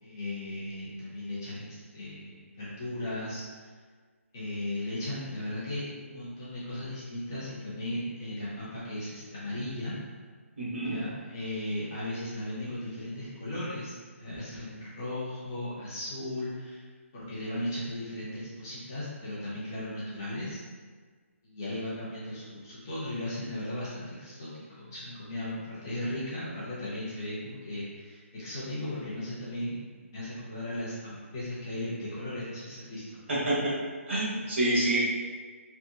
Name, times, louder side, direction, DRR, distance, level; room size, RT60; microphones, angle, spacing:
voice 1, 0.0-3.7 4.3-9.9 10.9-16.8 17.1-20.6 21.4-24.5 24.8-29.8 30.1-33.2, left 1 dB, 15° left, -9 dB, 0.3 m, -36 dB
voice 2, 10.6-11.0 33.3-33.7 34.1-35.0, right 1 dB, 60° right, -6 dB, 1.0 m, -27 dB
2.7 x 2.5 x 2.2 m, 1.5 s
hypercardioid pair, 175°, 8 cm